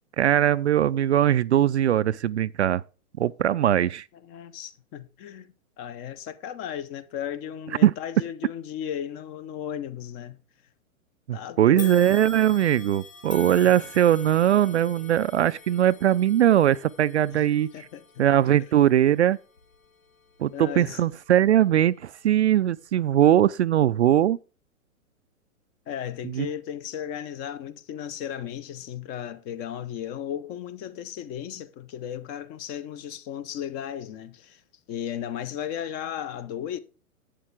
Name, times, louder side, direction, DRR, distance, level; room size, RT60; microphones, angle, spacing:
voice 1, 0.2-2.8 3.2-4.0 7.8-7.9 11.3-17.7 18.2-19.4 20.4-24.4 26.2-26.5, right 11 dB, 55° right, 0.5 m, -21 dB
voice 2, 4.2-10.4 11.3-11.9 13.6-13.8 17.3-17.4 17.7-18.2 20.5-21.0 25.9-34.6 34.9-36.8, left 9 dB, 20° left, 0.7 m, -35 dB
sound 1, 11.8-21.1 21.6-21.8 22.7-22.8, left 5 dB, 75° left, 2.3 m, -46 dB
11.5 x 8.6 x 3.6 m
figure-of-eight pair, 110°, 43 cm